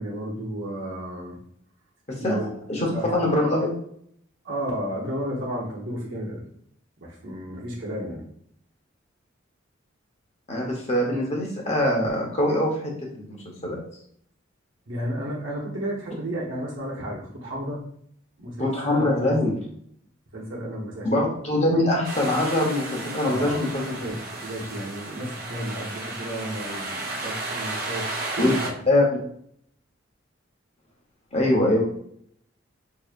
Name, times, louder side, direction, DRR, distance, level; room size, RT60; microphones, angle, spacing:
voice 1, 0.0-1.4 2.2-2.5 2.9-3.5 4.4-6.4 7.0-8.2 14.9-17.8 18.4-19.2 20.3-21.3 23.2-23.6 23.9-28.1 28.3-28.7, right 1 dB, 70° right, -5 dB, 1.0 m, -32 dB
voice 2, 2.7-3.7 10.5-13.4 13.6-13.8 18.6-19.5 21.0-24.1 28.4-28.5 28.9-29.0 31.3-31.8, left 1 dB, 35° left, -2 dB, 1.0 m, -23 dB
sound 1, 22.0-28.7, right 2 dB, 45° right, 0.7 m, -33 dB
4.7 x 2.8 x 2.5 m, 0.66 s
head